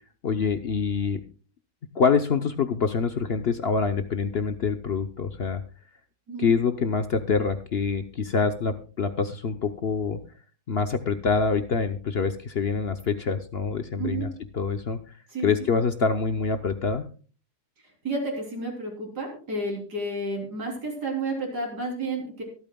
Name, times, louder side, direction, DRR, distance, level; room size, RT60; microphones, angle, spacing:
voice 1, 0.2-1.2 1.9-5.6 6.4-10.2 10.7-15.0 15.4-17.0, left 5 dB, 50° left, 9 dB, 0.8 m, -25 dB
voice 2, 14.0-14.3 15.3-15.5 18.0-22.4, right 2 dB, 85° right, 1 dB, 4.0 m, -31 dB
23.5 x 8.8 x 2.2 m, 0.38 s
omnidirectional pair, 1.7 m